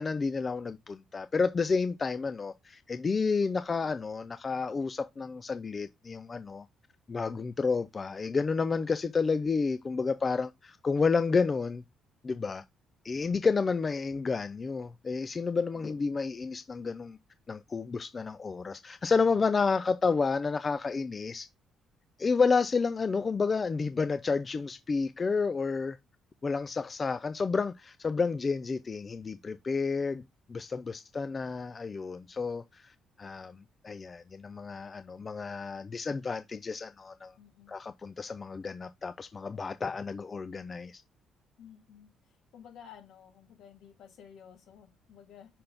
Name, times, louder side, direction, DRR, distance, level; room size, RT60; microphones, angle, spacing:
voice 1, 0.0-6.7 7.1-11.8 12.2-12.6 13.0-17.2 17.5-21.5 22.2-26.0 26.4-30.2 30.5-37.3 37.7-41.0, left 4 dB, 25° left, 0.3 m, -30 dB
voice 2, 15.7-16.1 37.4-37.8 41.6-45.6, left 8 dB, 70° left, 2.9 m, -54 dB
5.7 x 4.1 x 5.0 m
cardioid pair, 160°, 0 cm